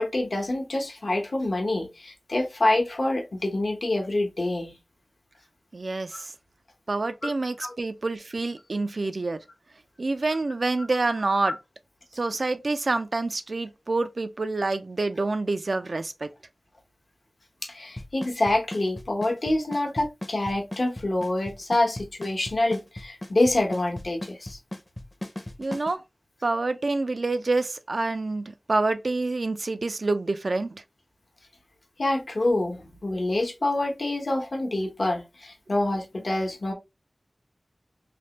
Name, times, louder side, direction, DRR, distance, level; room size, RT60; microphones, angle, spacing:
voice 1, 0.0-4.7 7.2-7.3 7.6-7.7 17.6-24.6 32.0-36.7, left 2 dB, 80° left, 0.9 m, -26 dB
voice 2, 5.7-6.3 6.9-9.4 10.0-11.6 12.2-16.3 25.6-26.0 26.4-30.8, right 3 dB, 80° right, 0.3 m, -27 dB
Drum kit / Snare drum / Bass drum, 18.0-25.9, left 1 dB, 30° left, 0.5 m, -36 dB
3.3 x 2.1 x 2.9 m
wide cardioid pair, 50°, 0 cm